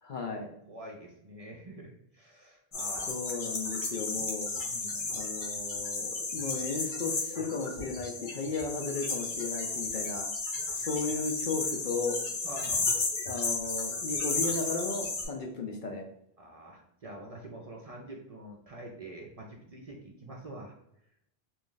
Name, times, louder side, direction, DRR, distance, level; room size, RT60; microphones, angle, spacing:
voice 1, 0.0-0.5 3.1-4.5 5.1-10.3 10.7-12.2 13.2-16.1, left 4 dB, 60° left, 2 dB, 0.6 m, -35 dB
voice 2, 0.7-3.2 4.6-5.3 12.4-12.9 16.4-20.8, right 1 dB, 45° right, -1 dB, 0.5 m, -46 dB
sound 1, 2.7-15.2, left 3 dB, 75° left, 1.2 m, -33 dB
3.0 x 2.5 x 3.7 m, 0.74 s
omnidirectional pair, 1.0 m